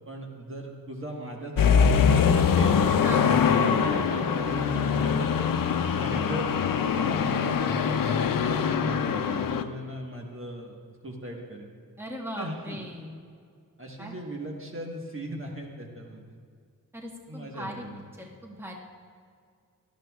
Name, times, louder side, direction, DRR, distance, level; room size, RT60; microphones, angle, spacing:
voice 1, 0.1-2.8 3.1-5.5 5.9-6.5 6.9-10.8 11.0-11.7 12.4-12.8 13.8-16.4 17.3-18.0, right 1 dB, 40° right, 0 dB, 1.3 m, -37 dB
sound 1, 1.6-9.6, left 7 dB, 90° left, 0.6 m, -23 dB
voice 2, 12.0-13.2 14.0-14.1 16.9-17.9 18.2-18.7, equal, 5° right, -1 dB, 1.3 m, -39 dB
18.5 x 13.0 x 2.4 m, 2.2 s
wide cardioid pair, 120°, 33 cm